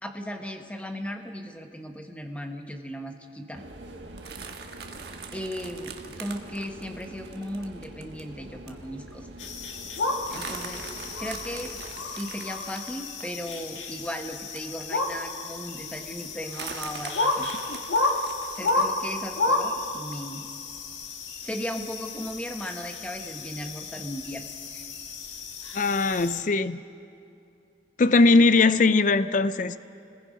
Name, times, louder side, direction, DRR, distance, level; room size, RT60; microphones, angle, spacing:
voice 1, 0.0-3.6 5.3-9.3 10.3-10.8 11.2-17.5 18.6-20.5 21.4-24.9, equal, 5° left, 4 dB, 1.2 m, -37 dB
sound 1, 3.5-11.9, right 1 dB, 75° right, 1.6 m, -45 dB
sound 2, 4.2-8.2 8.7-8.8 9.1-9.2 9.4-9.7 10.2-15.2 15.7-15.8 16.5-18.9, right 6 dB, 60° right, 1.5 m, -42 dB
sound 3, 9.4-26.4, left 2 dB, 85° left, 1.9 m, -32 dB
voice 2, 25.7-26.8 28.0-29.8, left 3 dB, 45° left, 14 dB, 0.5 m, -20 dB
30.0 x 21.0 x 5.2 m, 2.6 s
head